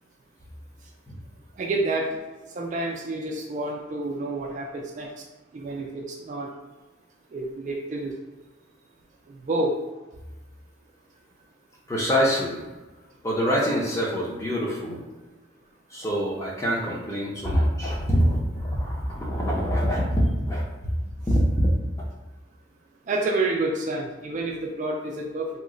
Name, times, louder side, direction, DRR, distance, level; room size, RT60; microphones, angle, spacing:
voice 1, 1.6-2.2 2.6-5.1 5.5-6.5 7.3-8.1 9.5-9.7 23.1-25.5, right 2 dB, 40° right, 0 dB, 0.3 m, -28 dB
voice 2, 11.9-12.6 13.2-15.0 15.9-20.6 21.3-21.7, equal, 15° left, -3 dB, 0.6 m, -24 dB
2.9 x 2.1 x 3.7 m, 1.2 s
head